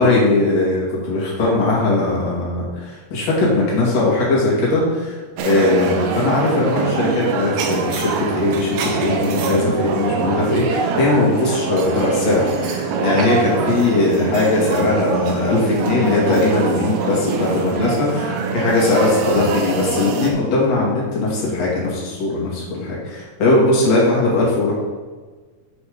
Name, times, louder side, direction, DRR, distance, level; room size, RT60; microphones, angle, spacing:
voice 1, 0.0-24.7, left 2 dB, 50° left, -5 dB, 3.1 m, -19 dB
sound 1, 5.4-20.3, right 5 dB, 80° right, 1.7 m, -23 dB
7.8 x 5.0 x 5.0 m, 1.4 s
omnidirectional pair, 4.4 m